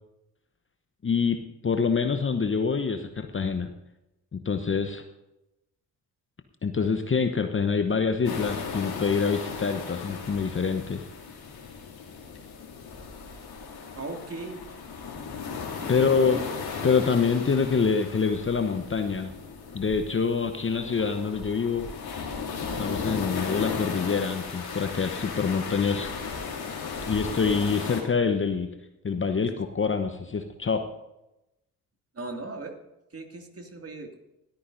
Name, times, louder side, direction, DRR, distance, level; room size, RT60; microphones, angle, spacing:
voice 1, 1.0-3.7 4.3-5.0 6.6-11.0 15.9-16.4 16.8-19.3 19.7-21.9 22.8-26.2 27.1-28.7 29.0-30.9, left 5 dB, 25° left, 8 dB, 1.0 m, -26 dB
sound 1, 8.2-28.0, left 5 dB, 55° left, 2.8 m, -36 dB
voice 2, 13.9-14.6 15.8-16.5 32.1-32.7 33.1-34.2, right 3 dB, 30° right, 3 dB, 2.4 m, -38 dB
20.0 x 13.5 x 2.7 m, 0.92 s
figure-of-eight pair, 40°, 46 cm